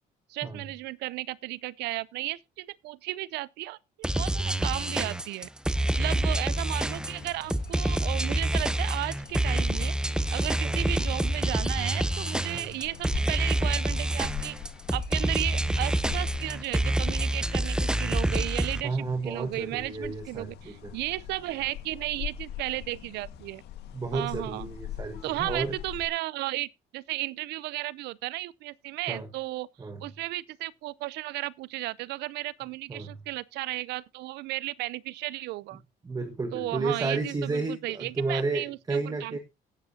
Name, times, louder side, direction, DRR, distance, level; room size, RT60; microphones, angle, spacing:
voice 1, 0.3-5.5 6.0-14.6 14.9-23.6 24.1-24.7 25.2-29.7 30.0-35.8 36.5-39.4, right 18 dB, 80° right, 0.5 m, -34 dB
sound 1, 4.0-18.8, right 1 dB, 5° right, 0.7 m, -27 dB
sound 2, 6.7-26.1, left 10 dB, 80° left, 1.6 m, -44 dB
voice 2, 18.8-20.9 23.9-25.8 29.1-29.3 29.8-30.0 32.9-33.2 36.0-39.4, right 3 dB, 20° right, 1.5 m, -32 dB
17.5 x 8.2 x 2.7 m
cardioid pair, 110°, 17 cm